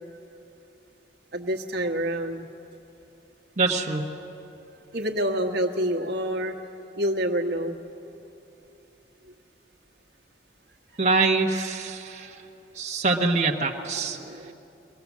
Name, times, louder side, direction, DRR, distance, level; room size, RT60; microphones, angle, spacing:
voice 1, 1.3-2.5 4.2-4.3 4.9-6.5 7.0-7.8 11.9-12.4 14.0-14.5, equal, 65° right, 2 dB, 1.3 m, -28 dB
voice 2, 3.6-4.1 11.0-12.3 12.7-14.2, right 3 dB, 40° right, -1 dB, 1.1 m, -24 dB
24.0 x 19.0 x 7.3 m, 2.9 s
head